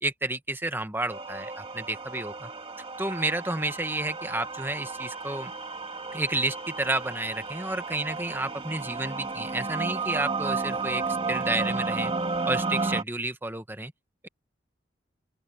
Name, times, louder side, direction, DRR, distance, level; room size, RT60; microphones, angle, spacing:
voice 1, 0.0-2.5 3.0-5.5 6.1-11.0 11.3-12.1 12.4-13.9, right 2 dB, 10° right, 1.3 m, -31 dB
sound 1, 1.1-13.0, right 3 dB, 30° right, 2.1 m, -32 dB
open air
head